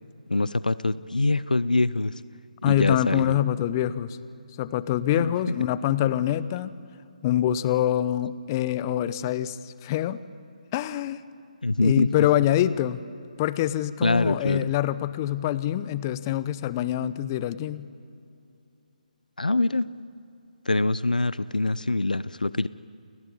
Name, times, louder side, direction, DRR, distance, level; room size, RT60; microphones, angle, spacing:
voice 1, 0.3-2.1 2.6-3.4 5.1-5.3 11.6-12.3 14.0-14.7 19.4-19.9 20.7-22.7, left 2 dB, 90° left, 18 dB, 0.7 m, -24 dB
voice 2, 2.6-4.2 4.6-6.7 7.2-10.2 10.7-11.2 11.8-13.0 13.4-17.9, left 12 dB, 25° left, 16 dB, 0.9 m, -25 dB
29.5 x 18.5 x 9.7 m, 2.5 s
figure-of-eight pair, 150°, 4 cm